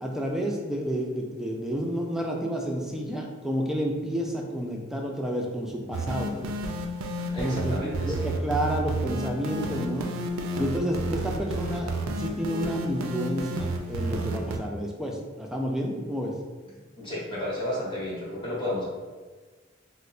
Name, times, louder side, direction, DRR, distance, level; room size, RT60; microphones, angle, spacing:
voice 1, 0.0-6.6 7.4-10.1 10.6-11.9 12.2-16.3, equal, ahead, -1 dB, 0.3 m, -30 dB
sound 1, 5.9-14.6, right 1 dB, 85° right, 0.4 m, -31 dB
voice 2, 7.3-8.3 16.9-18.8, left 1 dB, 25° left, -7 dB, 0.9 m, -32 dB
4.1 x 2.0 x 2.4 m, 1.4 s
head